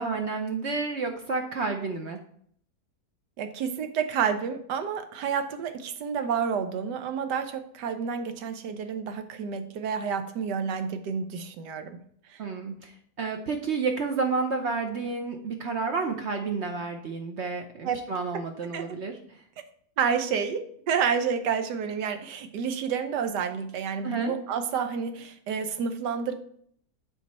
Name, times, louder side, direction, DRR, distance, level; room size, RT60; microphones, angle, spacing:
voice 1, 0.0-2.2 12.4-19.2 24.0-24.3, right 4 dB, 55° right, 4 dB, 0.8 m, -30 dB
voice 2, 3.4-12.0 12.3-12.4 17.8-18.0 18.3-18.8 20.0-20.6 20.9-26.3, right 6 dB, 90° right, 8 dB, 1.4 m, -29 dB
8.1 x 4.5 x 4.2 m, 0.62 s
omnidirectional pair, 1.8 m